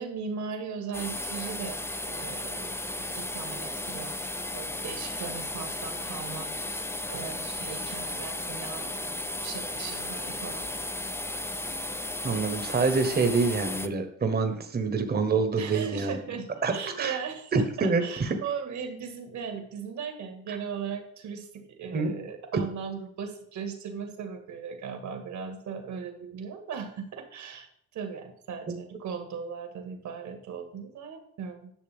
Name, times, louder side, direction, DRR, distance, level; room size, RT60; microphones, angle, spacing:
voice 1, 0.0-6.5 7.1-10.7 15.6-27.7 27.9-31.7, right 6 dB, 70° right, 5 dB, 1.8 m, -38 dB
sound 1, 0.9-13.9, left 2 dB, 10° left, 0.5 m, -35 dB
voice 2, 12.2-16.2 16.6-17.2 17.5-18.4 20.5-20.6 21.9-22.1 28.7-28.8, right 4 dB, 30° right, 7 dB, 1.1 m, -26 dB
10.5 x 6.6 x 3.5 m, 0.67 s
cardioid pair, 90°, 30 cm